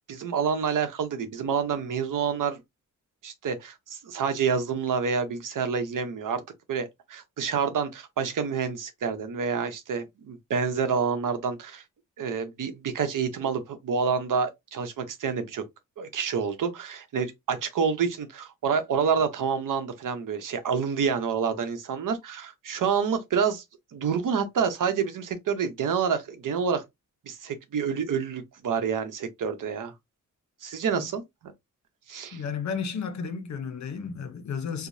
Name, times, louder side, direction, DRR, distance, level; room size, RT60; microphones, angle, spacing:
voice 1, 0.1-2.6 3.2-6.4 6.7-11.8 12.2-15.6 16.0-23.6 23.9-26.8 27.3-29.9 30.6-31.2 32.1-32.4, right 6 dB, 85° right, 0.9 m, -28 dB
voice 2, 32.3-34.9, left 6 dB, 65° left, 0.8 m, -33 dB
4.8 x 2.2 x 2.7 m
wide cardioid pair, 140°, 31 cm